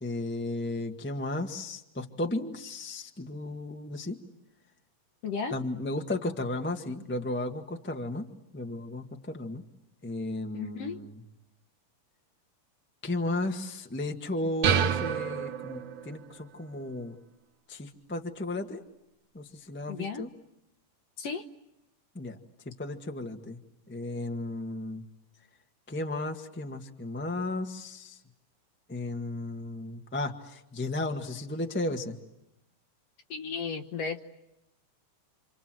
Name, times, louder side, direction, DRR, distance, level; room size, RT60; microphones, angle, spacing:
voice 1, 0.0-4.2 5.5-8.3 8.5-9.6 10.0-11.2 13.0-17.1 17.7-18.8 19.3-20.3 22.1-22.4 22.8-23.6 23.9-25.0 25.9-28.2 28.9-32.1, left 2 dB, 15° left, 3 dB, 0.4 m, -34 dB
voice 2, 5.2-5.5 10.5-11.0 19.9-20.3 21.2-21.4 33.3-34.2, left 5 dB, 60° left, 6 dB, 1.9 m, -34 dB
sound 1, 14.6-16.3, right 8 dB, 65° right, 2.3 m, -28 dB
28.5 x 27.0 x 7.7 m, 0.88 s
omnidirectional pair, 3.8 m